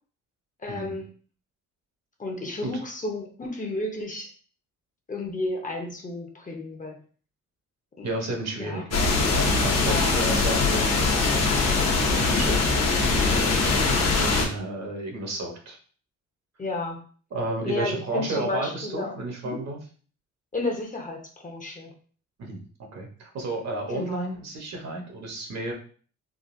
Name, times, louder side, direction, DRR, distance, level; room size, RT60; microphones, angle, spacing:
voice 1, 0.6-1.0 2.2-4.3 5.1-7.0 8.0-8.1 8.6-8.8 9.8-10.2 16.6-17.0 17.6-19.2 19.4-19.6 20.5-21.9 23.9-24.3, left 2 dB, 25° left, 2 dB, 0.7 m, -32 dB
voice 2, 8.0-11.8 12.2-13.5 14.1-15.8 17.3-19.8 22.4-22.6 22.9-25.7, right 2 dB, 60° right, 1 dB, 1.1 m, -32 dB
sound 1, 8.9-14.5, left 3 dB, 55° left, 0.9 m, -22 dB
3.8 x 2.4 x 2.6 m, 0.43 s
cardioid pair, 90°, 30 cm